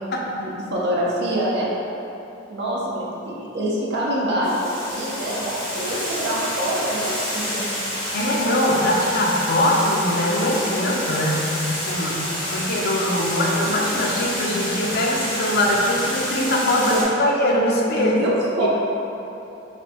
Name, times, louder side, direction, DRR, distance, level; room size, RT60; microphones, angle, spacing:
voice 1, 0.3-1.7 2.5-7.7 16.8-17.0 18.0-18.7, right 1 dB, 65° right, -5 dB, 0.6 m, -25 dB
Water, 4.4-17.0, equal, 25° left, 1.0 m, -29 dB
voice 2, 8.1-18.1 18.6-18.7, left 1 dB, 55° left, -2 dB, 0.5 m, -22 dB
3.3 x 2.6 x 4.1 m, 3.0 s
head